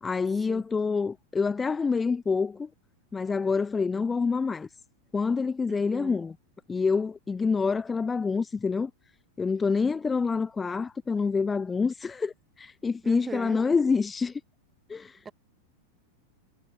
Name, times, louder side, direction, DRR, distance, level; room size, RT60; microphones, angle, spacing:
voice 1, 0.0-2.7 3.1-4.7 5.1-6.3 6.7-8.9 9.4-14.4 14.9-15.2, left 5 dB, 15° left, 0.4 m, -27 dB
voice 2, 5.7-6.2 13.0-13.6 15.2-15.3, right 5 dB, 15° right, 0.7 m, -40 dB
figure-of-eight pair, 90°, 0 cm